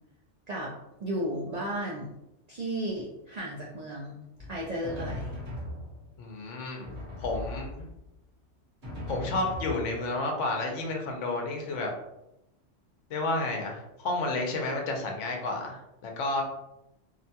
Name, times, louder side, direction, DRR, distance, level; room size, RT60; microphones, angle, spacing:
voice 1, 1.0-2.1 2.5-4.2 4.5-5.3, right 1 dB, 65° right, -4 dB, 0.4 m, -34 dB
Drum, 4.4-6.3 6.8-8.1 8.8-10.3, left 1 dB, 45° right, 1.0 m, -39 dB
voice 2, 6.2-6.9 7.2-7.9 9.1-11.9 13.1-16.4, left 2 dB, 80° left, 1 dB, 1.0 m, -31 dB
2.8 x 2.2 x 2.7 m, 0.88 s
omnidirectional pair, 1.3 m